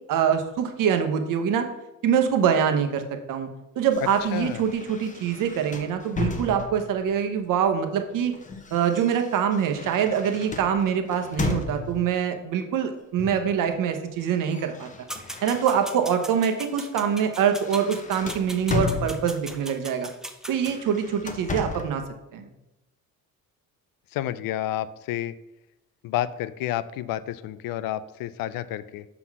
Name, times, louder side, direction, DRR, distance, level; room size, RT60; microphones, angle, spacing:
voice 1, 0.1-1.7 2.0-3.0 3.3-3.5 3.8-8.3 8.7-14.9 15.4-20.1 20.5-22.0 22.3-22.5, right 8 dB, 70° right, 7 dB, 0.9 m, -24 dB
sound 1, 3.9-7.0 8.0-12.2 13.2-13.6 13.9-16.2 16.6-16.8 17.2-19.6 20.5-22.0, left 3 dB, 20° left, 0.7 m, -34 dB
voice 2, 4.0-4.6 24.1-25.3 26.0-29.1, left 12 dB, 80° left, 16 dB, 0.5 m, -30 dB
sound 2, 15.1-20.8, right 1 dB, ahead, 0.4 m, -39 dB
5.9 x 3.9 x 6.0 m, 0.95 s
cardioid pair, 135°, 34 cm